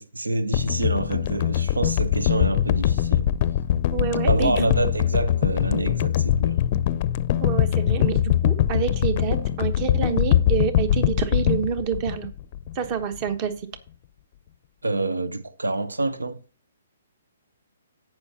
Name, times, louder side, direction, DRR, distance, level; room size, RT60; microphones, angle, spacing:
voice 1, 0.0-3.3 4.2-6.6 14.8-16.4, right 2 dB, 85° right, 0.8 m, -27 dB
sound 1, 0.5-12.9 13.2-13.3, left 11 dB, 40° left, 0.5 m, -22 dB
voice 2, 3.9-4.7 7.4-12.3 12.7-13.5, right 6 dB, 35° right, 1.2 m, -27 dB
17.0 x 5.9 x 2.8 m
figure-of-eight pair, 130°, 0 cm